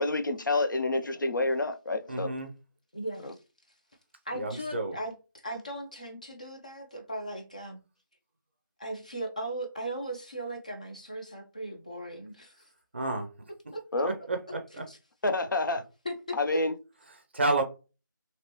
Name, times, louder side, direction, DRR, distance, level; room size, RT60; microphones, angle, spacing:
voice 1, 0.0-2.3 3.2-3.3 13.9-14.1 15.2-15.8 16.4-16.7, left 2 dB, 70° left, 0.6 m, -28 dB
voice 2, 2.1-2.5 4.4-4.9 12.9-13.3 14.3-14.6 17.3-17.6, right 2 dB, 35° right, 0.5 m, -29 dB
voice 3, 2.9-3.4 4.3-7.8 8.8-12.7 13.7-13.8 14.7-15.0 16.0-16.6, right 1 dB, 20° left, 0.4 m, -38 dB
2.9 x 2.9 x 2.9 m
figure-of-eight pair, 170°, 11 cm